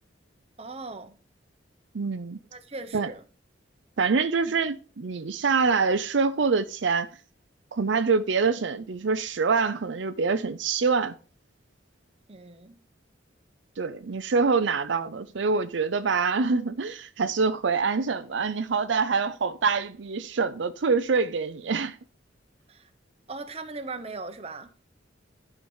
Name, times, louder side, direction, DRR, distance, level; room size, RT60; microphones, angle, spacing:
voice 1, 0.6-1.2 2.5-3.2 12.3-12.8 22.7-22.9 23.3-24.7, right 3 dB, 30° right, 1.0 m, -39 dB
voice 2, 1.9-2.4 2.9-3.1 4.0-7.1 7.7-11.1 13.8-22.0, right 4 dB, 70° right, 0.5 m, -25 dB
11.5 x 4.7 x 5.6 m
head